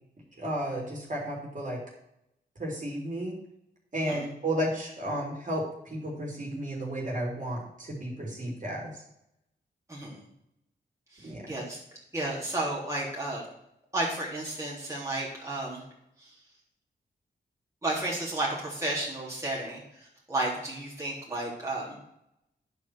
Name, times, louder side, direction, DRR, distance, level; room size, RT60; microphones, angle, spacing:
voice 1, 0.4-1.8 2.6-3.4 3.9-9.0 11.2-11.6, right 1 dB, 45° right, -3 dB, 3.8 m, -33 dB
voice 2, 9.9-10.2 11.1-11.8 12.1-13.4 13.9-15.8 16.2-16.3 17.8-22.0, right 2 dB, 15° right, -5 dB, 3.5 m, -32 dB
10.5 x 4.9 x 6.3 m, 0.79 s
cardioid pair, 75°, 18 cm